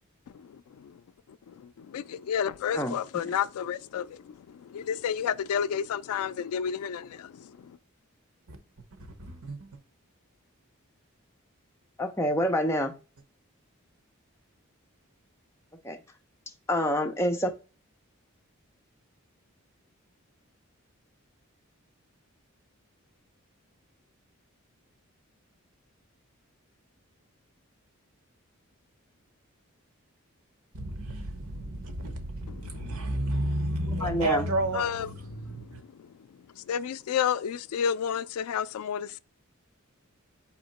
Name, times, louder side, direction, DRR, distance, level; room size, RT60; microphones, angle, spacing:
voice 1, 0.4-0.9 1.6-7.7 34.7-35.1 36.7-39.2, left 8 dB, 85° left, 0.3 m, -31 dB
voice 2, 9.0-9.8 30.7-35.8, right 2 dB, 85° right, 0.9 m, -32 dB
voice 3, 12.0-12.9 15.8-16.0 16.7-17.5 34.0-34.5, left 1 dB, 10° left, 0.6 m, -27 dB
4.3 x 2.8 x 4.0 m
head